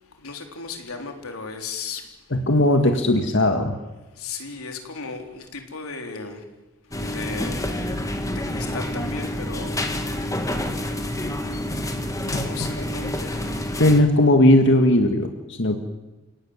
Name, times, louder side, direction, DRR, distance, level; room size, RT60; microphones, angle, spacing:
voice 1, 0.0-2.2 4.1-6.4 6.8-8.1 8.3-9.8 12.3-13.5, left 4 dB, 85° left, 4 dB, 3.8 m, -36 dB
voice 2, 2.3-3.7 12.3-12.4 13.8-15.8, left 1 dB, 55° left, 5 dB, 1.9 m, -18 dB
sound 1, 6.9-14.0, left 1 dB, 15° left, 2.1 m, -28 dB
29.0 x 17.5 x 9.8 m, 1.1 s
head